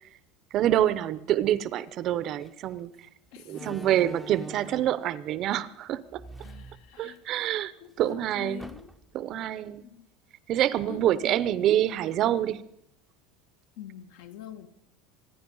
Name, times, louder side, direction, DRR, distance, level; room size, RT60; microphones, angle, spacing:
voice 1, 0.5-2.9 3.5-6.2 7.0-7.7 8.0-8.7 9.1-9.8 10.5-12.6, right 12 dB, 40° right, 0.6 m, -26 dB
Slam, 2.4-2.6 3.5-5.0 6.1-7.5 7.9-8.0 8.6-9.2, right 2 dB, ahead, 0.6 m, -45 dB
voice 2, 3.3-3.9 6.4-7.2 7.8-8.9 9.8-10.1 10.9-11.4 13.8-14.7, left 9 dB, 65° left, 1.4 m, -44 dB
25.5 x 10.0 x 5.4 m
cardioid pair, 165°, 0 cm